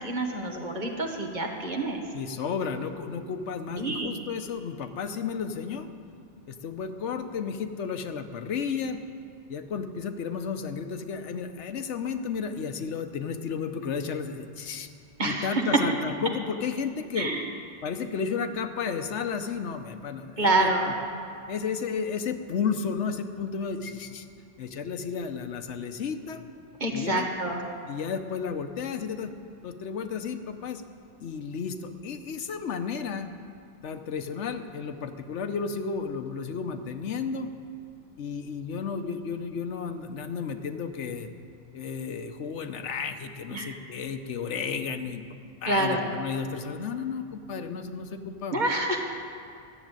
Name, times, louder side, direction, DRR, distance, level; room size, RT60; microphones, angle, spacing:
voice 1, 0.0-2.0 3.7-4.1 15.2-15.6 17.2-17.4 20.4-20.9 26.8-27.6 43.5-43.7 45.7-46.0 48.5-49.0, right 2 dB, 40° right, 1 dB, 1.5 m, -27 dB
voice 2, 2.1-5.9 6.5-9.0 9.5-14.9 15.2-17.3 17.8-20.7 21.5-24.3 24.6-26.4 26.9-27.3 27.9-29.3 29.6-30.8 31.2-33.3 33.8-37.5 38.2-41.3 41.7-45.2 45.6-48.6, left 6 dB, 85° left, 8 dB, 1.1 m, -33 dB
13.0 x 7.3 x 9.0 m, 2.4 s
omnidirectional pair, 1.2 m